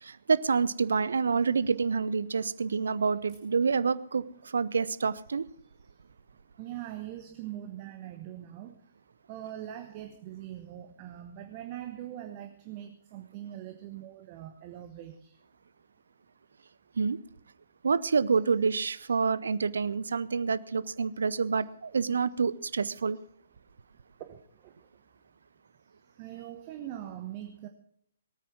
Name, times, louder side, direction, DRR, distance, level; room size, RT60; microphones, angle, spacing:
voice 1, 0.0-5.4 17.0-17.2 17.8-23.2, right 5 dB, 60° right, 18 dB, 0.6 m, -28 dB
voice 2, 6.6-8.8 9.3-15.3 19.0-19.2 24.3-24.7 26.2-27.7, right 12 dB, 30° right, 7 dB, 1.1 m, -42 dB
18.0 x 9.2 x 6.1 m, 0.66 s
figure-of-eight pair, 125°, 0 cm